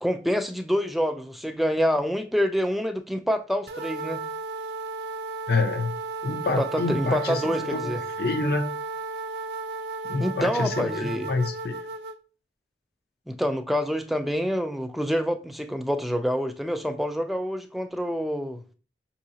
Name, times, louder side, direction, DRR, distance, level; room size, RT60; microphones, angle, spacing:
voice 1, 0.0-4.2 6.6-8.0 10.2-11.3 13.3-18.6, equal, ahead, 0.3 m, -27 dB
sound 1, 3.7-12.2, right 3 dB, 65° right, 0.5 m, -34 dB
voice 2, 5.5-6.0 6.2-7.9 8.2-8.7 10.1-11.7, left 3 dB, 60° left, 0.6 m, -27 dB
5.5 x 2.8 x 2.7 m
head